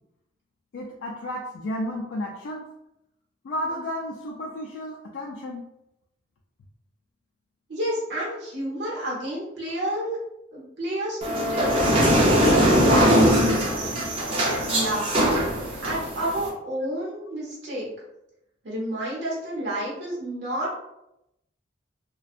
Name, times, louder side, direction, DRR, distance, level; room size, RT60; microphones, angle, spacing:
voice 1, 0.7-2.7 3.4-5.6, left 1 dB, 80° left, -2 dB, 0.4 m, -32 dB
voice 2, 7.7-10.2 10.5-13.7 14.7-15.4 15.8-17.9 18.6-20.8, right 1 dB, 60° right, -5 dB, 0.8 m, -30 dB
sound 1, 11.2-16.5, equal, 30° right, 0.5 m, -21 dB
2.6 x 2.2 x 2.4 m, 0.84 s
head